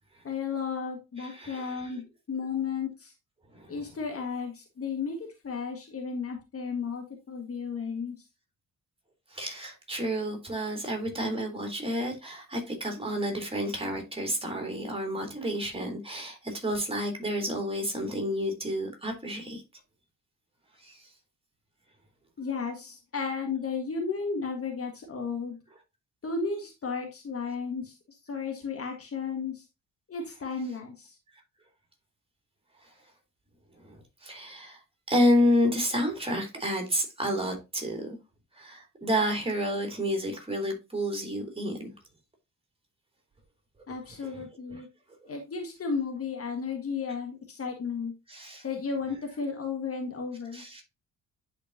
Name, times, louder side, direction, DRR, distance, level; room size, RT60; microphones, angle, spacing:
voice 1, 0.2-3.1 3.7-8.2 22.4-25.6 26.2-27.9 28.3-29.6 30.1-31.1 43.9-44.9 45.3-48.1 48.6-50.6, left 5 dB, 35° left, 1.6 m, -34 dB
voice 2, 1.2-2.0 3.5-3.8 9.3-19.6 20.8-21.0 33.8-34.8 35.1-38.2 38.6-41.9 44.3-44.8 48.3-48.6 50.5-50.8, equal, 15° right, 2.8 m, -30 dB
10.0 x 4.5 x 2.6 m
figure-of-eight pair, 45°, 41 cm